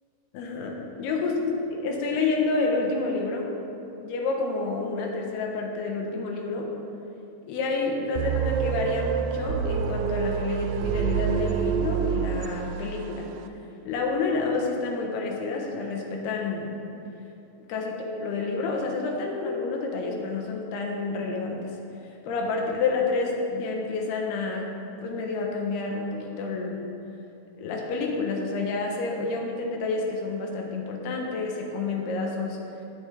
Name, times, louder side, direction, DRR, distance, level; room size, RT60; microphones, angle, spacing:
voice 1, 0.3-3.5 4.0-6.7 7.5-13.3 13.9-16.8 17.7-21.8 22.2-24.7 25.0-26.8 27.6-32.6, left 3 dB, 85° left, 0 dB, 3.2 m, -29 dB
sound 1, 8.2-13.2, right 8 dB, 85° right, 1.9 m, -27 dB
20.5 x 7.1 x 3.5 m, 2.9 s
omnidirectional pair, 4.6 m